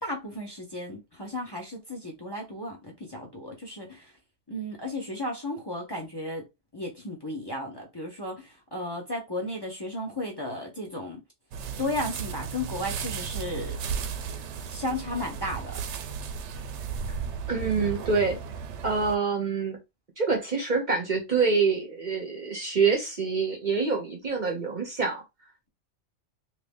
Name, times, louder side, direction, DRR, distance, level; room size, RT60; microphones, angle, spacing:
voice 1, 0.0-4.1 4.5-6.5 6.7-11.2 11.8-13.8 14.7-15.8, left 1 dB, 25° left, 0.7 m, -34 dB
sound 1, 11.5-19.2, right 6 dB, 75° right, 0.8 m, -35 dB
voice 2, 17.5-18.4 18.8-19.8 20.2-25.2, right 4 dB, 45° right, 0.8 m, -26 dB
2.9 x 2.6 x 3.5 m
omnidirectional pair, 1.2 m